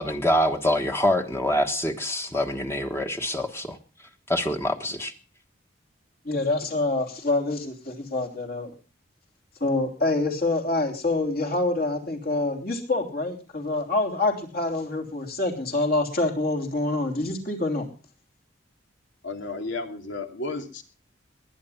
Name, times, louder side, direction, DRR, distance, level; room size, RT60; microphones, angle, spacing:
voice 1, 0.0-3.8 4.3-5.1, left 1 dB, 15° left, 5 dB, 1.3 m, -25 dB
voice 2, 6.2-8.7 9.6-17.9, left 2 dB, 50° left, 5 dB, 3.3 m, -26 dB
voice 3, 19.2-20.8, left 3 dB, 80° left, 6 dB, 2.6 m, -33 dB
20.5 x 10.0 x 5.7 m, 0.37 s
head